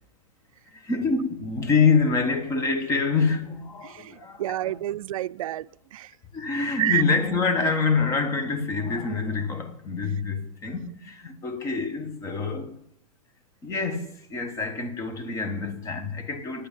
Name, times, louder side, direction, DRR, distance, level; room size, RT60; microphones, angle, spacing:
voice 1, 0.7-4.6 6.3-12.7 13.6-16.7, left 4 dB, 15° left, 1.1 m, -26 dB
voice 2, 3.8-6.2 6.8-7.0 10.8-10.9, right 14 dB, 80° right, 0.4 m, -29 dB
10.0 x 7.8 x 9.1 m
supercardioid pair, 160°, 17 cm